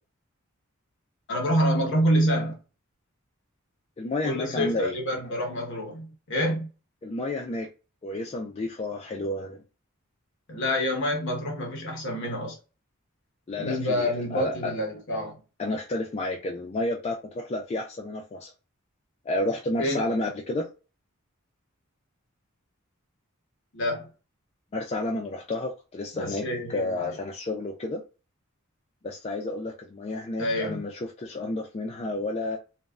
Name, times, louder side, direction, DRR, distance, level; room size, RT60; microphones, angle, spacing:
voice 1, 1.3-2.6 4.2-6.7 10.5-12.6 13.6-15.4 19.8-20.0 23.7-24.1 26.2-27.2 30.4-30.8, equal, 60° left, 1.0 m, -27 dB
voice 2, 4.0-4.9 7.0-7.7 8.0-9.6 13.5-14.7 15.6-18.5 19.3-20.7 24.7-26.4 26.7-28.0 29.0-30.9 31.2-32.6, left 2 dB, 30° left, 0.3 m, -31 dB
3.3 x 2.0 x 2.4 m
head